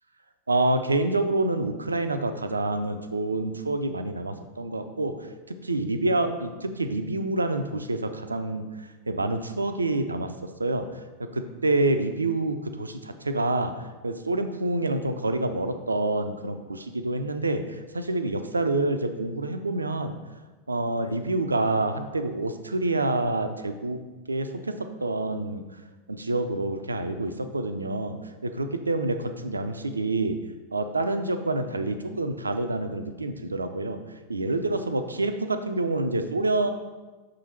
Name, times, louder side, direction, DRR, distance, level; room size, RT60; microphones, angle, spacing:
voice 1, 0.5-5.2 5.5-10.9 11.2-13.7 14.0-20.1 20.7-24.0 24.3-25.6 26.1-28.2 28.4-30.4 30.7-34.0 34.3-36.7, right 2 dB, 80° right, 8 dB, 0.4 m, -27 dB
6.2 x 3.8 x 4.3 m, 1.2 s
figure-of-eight pair, 90°, 0 cm